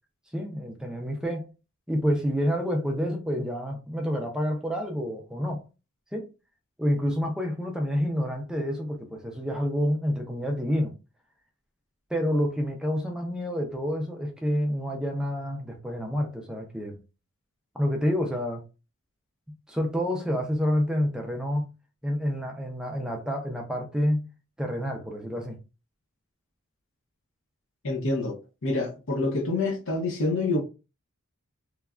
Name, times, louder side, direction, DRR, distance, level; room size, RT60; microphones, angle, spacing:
voice 1, 0.3-1.5 1.9-5.6 6.1-6.3 6.8-10.9 12.1-17.0 17.7-18.6 19.7-21.7 22.0-24.3 24.6-25.6, equal, 5° right, 0.4 m, -28 dB
voice 2, 27.8-28.4 28.6-30.6, left 2 dB, 60° left, 0.7 m, -27 dB
3.2 x 2.2 x 2.3 m
head